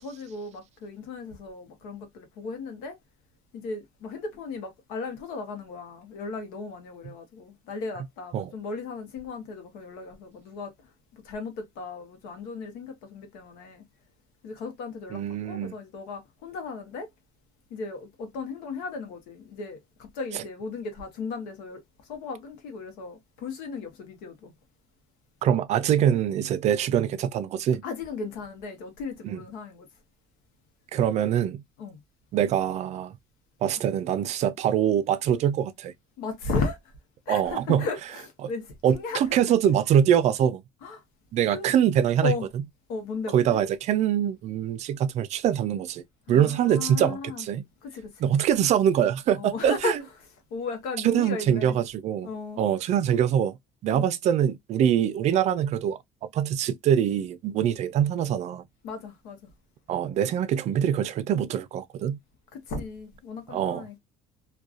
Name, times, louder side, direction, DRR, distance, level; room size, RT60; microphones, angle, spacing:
voice 1, 0.0-3.0 3.5-10.7 11.1-13.8 14.4-17.1 17.7-21.8 22.1-24.5 27.8-29.9 31.8-32.0 36.2-36.8 37.3-39.2 40.8-41.0 41.5-41.7 42.2-42.5 42.9-43.6 46.3-47.5 47.8-48.3 49.3-50.0 50.5-51.8 52.2-52.6 53.9-54.1 58.8-59.5 62.5-63.9, left 4 dB, 80° left, 0.8 m, -35 dB
voice 2, 15.1-15.7 20.3-20.4 25.4-27.8 29.2-29.4 30.9-31.6 32.3-33.2 33.6-35.9 37.3-37.8 38.8-40.6 41.3-42.3 43.3-46.0 46.3-47.6 48.2-50.0 51.0-52.3 52.6-53.6 53.8-56.0 56.3-58.6 59.9-62.2 63.5-64.0, right 9 dB, 50° right, 0.4 m, -24 dB
2.3 x 2.2 x 2.4 m
supercardioid pair, 100°, 14 cm